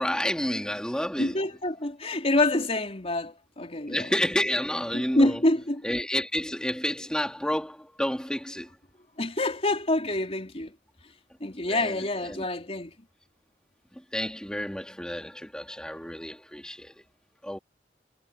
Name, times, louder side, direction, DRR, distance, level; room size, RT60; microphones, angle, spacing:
voice 1, 0.0-1.4 3.9-5.4 5.8-8.7 11.6-12.4 13.9-16.9 17.4-17.6, equal, 5° left, 3.8 m, -30 dB
voice 2, 1.2-4.1 4.9-5.8 9.2-10.7 11.4-12.9, left 2 dB, 35° left, 4.1 m, -26 dB
head